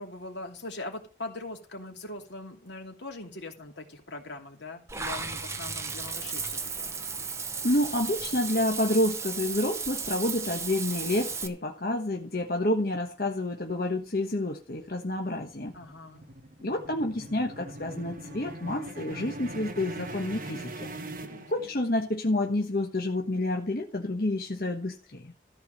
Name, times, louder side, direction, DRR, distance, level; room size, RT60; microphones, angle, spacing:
voice 1, 0.0-6.9 15.7-16.3 21.2-21.5, left 2 dB, 85° left, 3 dB, 2.7 m, -41 dB
Water / Bathtub (filling or washing), 4.9-11.5, right 5 dB, 15° right, 0.8 m, -35 dB
voice 2, 7.6-15.7 16.6-20.9 21.5-25.3, left 1 dB, 55° left, 2 dB, 1.3 m, -29 dB
sound 1, 14.8-22.1, right 1 dB, 50° right, 1.5 m, -41 dB
13.5 x 4.9 x 7.4 m, 0.33 s
head